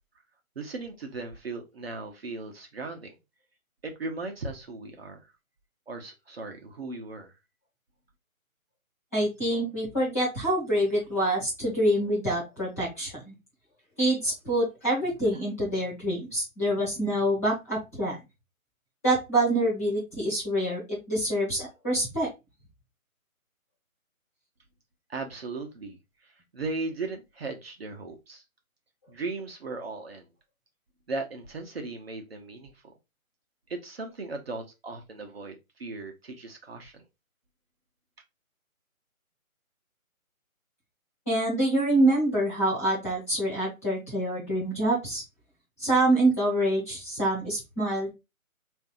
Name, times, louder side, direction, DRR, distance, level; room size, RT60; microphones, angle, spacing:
voice 1, 0.6-3.2 3.8-5.2 5.9-7.3 25.1-26.0 26.5-28.4 29.1-30.3 31.1-32.9 33.7-37.0, right 3 dB, 45° right, 3 dB, 0.8 m, -37 dB
voice 2, 9.1-13.3 14.0-18.2 19.0-22.3 41.3-45.2 45.8-48.1, right 1 dB, 10° left, -6 dB, 0.8 m, -26 dB
3.6 x 2.7 x 3.6 m, 0.23 s
figure-of-eight pair, 160°, 43 cm